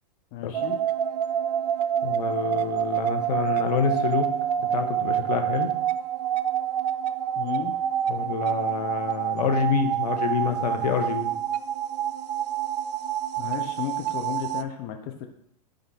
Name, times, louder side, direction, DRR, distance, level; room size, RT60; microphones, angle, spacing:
voice 1, 0.3-0.8 7.4-7.7 13.4-15.3, left 10 dB, 35° left, 4 dB, 0.7 m, -33 dB
sound 1, 0.5-14.6, right 10 dB, 80° right, 0.4 m, -27 dB
voice 2, 2.0-4.3 4.7-5.7 8.1-11.3, left 6 dB, 75° left, 6 dB, 1.1 m, -27 dB
5.1 x 3.6 x 5.6 m, 0.72 s
hypercardioid pair, 140°, 21 cm